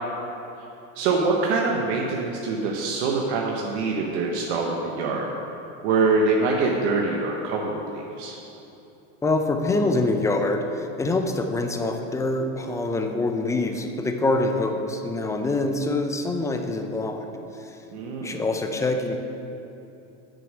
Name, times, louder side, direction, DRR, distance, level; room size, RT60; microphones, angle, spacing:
voice 1, 0.9-5.3 5.8-8.4 17.9-18.4, right 3 dB, 75° right, -1 dB, 1.1 m, -24 dB
voice 2, 9.2-17.3 17.6-17.8 18.2-19.2, left 2 dB, 10° left, 5 dB, 0.5 m, -25 dB
7.6 x 6.7 x 6.4 m, 2.9 s
supercardioid pair, 135°, 34 cm